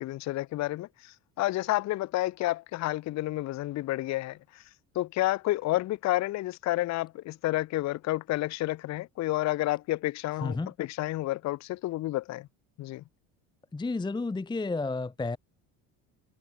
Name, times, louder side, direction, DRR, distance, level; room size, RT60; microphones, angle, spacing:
voice 1, 0.0-4.6 5.0-12.5 12.8-13.0, left 17 dB, 45° left, 0.5 m, -30 dB
voice 2, 10.4-10.7 13.7-15.4, left 3 dB, 10° left, 0.7 m, -31 dB
hypercardioid pair, 65°, 40 cm